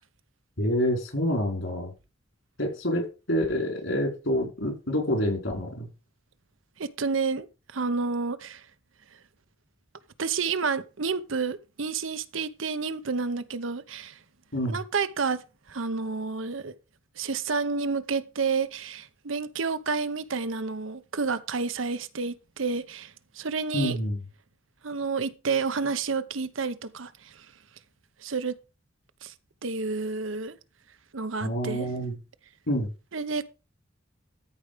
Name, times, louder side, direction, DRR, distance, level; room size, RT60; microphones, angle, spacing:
voice 1, 0.6-1.9 2.6-5.9 14.5-14.8 23.7-24.2 31.4-32.2 32.7-32.9, equal, 70° left, 4.6 m, -27 dB
voice 2, 6.8-7.5 7.7-8.6 10.2-14.2 14.7-15.4 15.7-16.7 17.2-24.0 24.8-27.4 28.2-28.6 29.2-29.3 29.6-30.6 31.1-31.9 33.1-33.4, right 4 dB, 75° right, 0.8 m, -30 dB
13.5 x 5.0 x 5.0 m
head